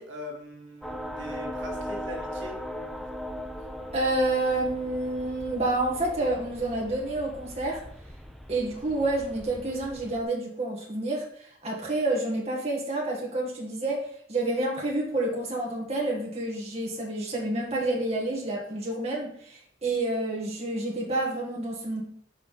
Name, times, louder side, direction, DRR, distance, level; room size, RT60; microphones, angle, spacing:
voice 1, 0.0-2.6, equal, 85° right, 0 dB, 1.7 m, -41 dB
sound 1, 0.8-10.2, equal, ahead, 0.6 m, -39 dB
voice 2, 3.9-7.8 8.5-22.0, right 2 dB, 35° right, -2 dB, 1.7 m, -29 dB
5.8 x 4.6 x 5.8 m, 0.62 s
head